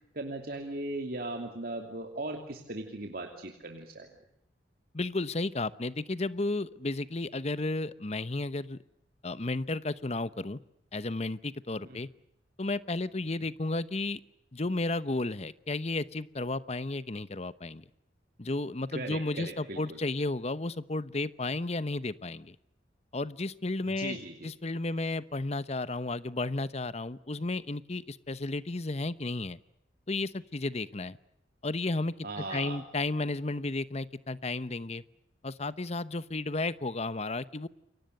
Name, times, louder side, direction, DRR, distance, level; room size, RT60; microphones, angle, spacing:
voice 1, 0.1-4.1 11.9-12.0 18.9-20.0 24.0-24.5 32.2-32.8, right 2 dB, 55° right, 3 dB, 2.8 m, -38 dB
voice 2, 4.9-8.8 9.2-10.6 10.9-12.1 12.6-14.2 14.5-17.8 18.4-22.6 23.1-24.2 24.4-29.6 30.1-31.2 31.6-35.0 35.4-37.7, left 2 dB, 35° left, 16 dB, 0.9 m, -33 dB
29.0 x 23.5 x 6.7 m, 0.78 s
head